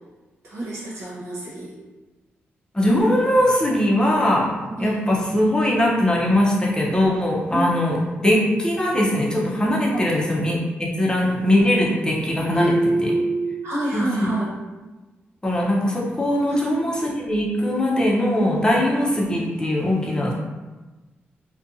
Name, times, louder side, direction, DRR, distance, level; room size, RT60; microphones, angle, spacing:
voice 1, 0.4-1.8 4.7-5.1 7.5-7.7 9.9-10.1 12.5-14.6 16.5-17.0, right 1 dB, 90° right, -7 dB, 1.0 m, -26 dB
voice 2, 2.7-4.5 4.8-12.7 13.0-13.1 13.9-14.4 15.4-20.3, left 1 dB, 20° left, -3 dB, 0.6 m, -21 dB
2.5 x 2.2 x 2.6 m, 1.2 s
cardioid pair, 75°, 4 cm